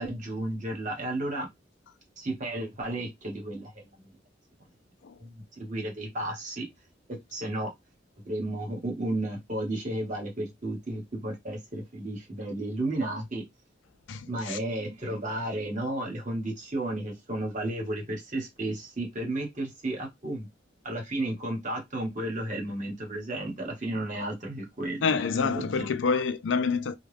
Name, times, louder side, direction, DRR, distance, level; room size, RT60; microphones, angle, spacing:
voice 1, 0.0-1.5 2.2-3.8 5.2-5.3 5.6-6.7 7.1-7.7 8.2-13.4 14.3-20.5 20.8-25.9, right 1 dB, 45° right, 1.2 m, -33 dB
voice 2, 14.1-14.6 25.0-26.9, left 5 dB, 85° left, 0.4 m, -27 dB
2.4 x 2.3 x 3.3 m
head